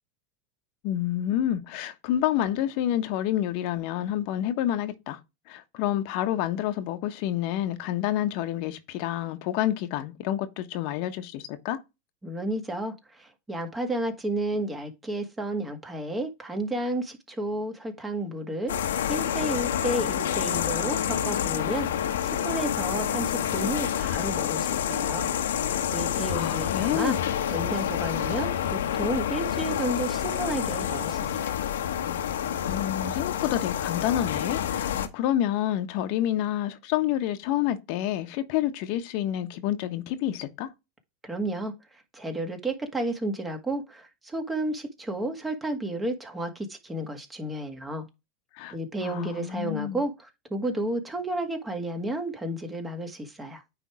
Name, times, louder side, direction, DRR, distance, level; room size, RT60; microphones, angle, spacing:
voice 1, 0.8-5.2 5.5-11.8 26.3-27.2 32.7-40.7 48.5-48.8 49.0-50.0, left 12 dB, 60° left, 1.1 m, -28 dB
voice 2, 12.2-21.9 22.2-25.3 25.9-31.5 41.2-48.1 48.7-53.6, right 1 dB, 15° right, 1.8 m, -32 dB
sound 1, 18.7-35.1, left 9 dB, 80° left, 1.1 m, -28 dB
9.4 x 3.5 x 4.9 m
hypercardioid pair, 105°, 0 cm